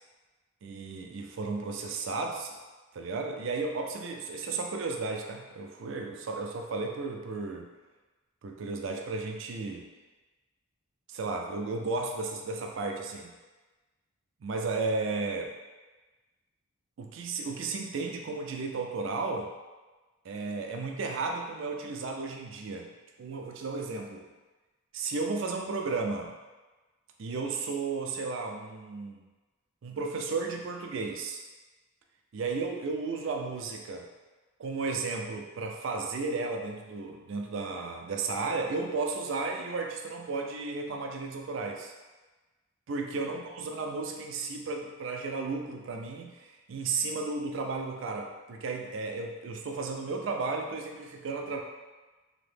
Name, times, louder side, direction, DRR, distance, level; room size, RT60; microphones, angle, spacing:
voice 1, 0.6-2.5 2.9-7.7 8.4-9.9 11.1-13.3 14.4-15.5 17.0-19.5 20.2-22.9 23.2-24.3 24.9-26.3 27.2-29.3 29.8-31.4 32.3-34.1 34.6-41.9 42.9-51.6, right 3 dB, 65° right, 2 dB, 0.4 m, -34 dB
2.8 x 2.0 x 3.3 m, 1.2 s
head